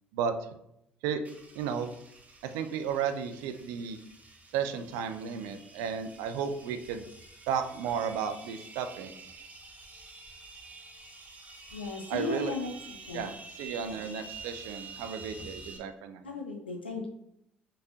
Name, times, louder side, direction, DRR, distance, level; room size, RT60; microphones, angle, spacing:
sound 1, 1.2-15.8, right 3 dB, 30° right, 1.0 m, -49 dB
voice 1, 1.5-1.9 2.5-4.0 4.5-7.0 7.5-9.1 12.1-12.6 13.1-16.3, right 7 dB, 65° right, 8 dB, 0.4 m, -33 dB
voice 2, 11.7-12.7 13.1-13.3 13.9-14.0 16.2-17.1, left 3 dB, 90° left, 2 dB, 0.6 m, -36 dB
5.4 x 4.0 x 2.4 m, 0.79 s
figure-of-eight pair, 55°, 5 cm